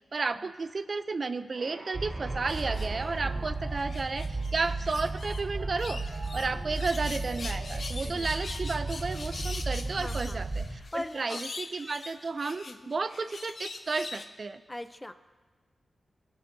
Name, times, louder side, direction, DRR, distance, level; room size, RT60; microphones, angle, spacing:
voice 1, 0.1-6.0 6.3-14.6, right 4 dB, 50° right, 12 dB, 0.4 m, -33 dB
sound 1, 1.5-10.3, right 2 dB, 70° right, 1.6 m, -48 dB
sound 2, 1.9-10.8, right 2 dB, 30° right, 0.9 m, -34 dB
sound 3, 2.5-3.2 3.7-5.4 5.8-14.3, left 3 dB, 55° left, 0.6 m, -43 dB
voice 2, 9.9-10.5 10.9-11.4 12.6-12.9 14.7-15.1, left 1 dB, 15° left, 11 dB, 0.5 m, -41 dB
18.5 x 9.0 x 2.6 m, 1.3 s
cardioid pair, 80°, 0 cm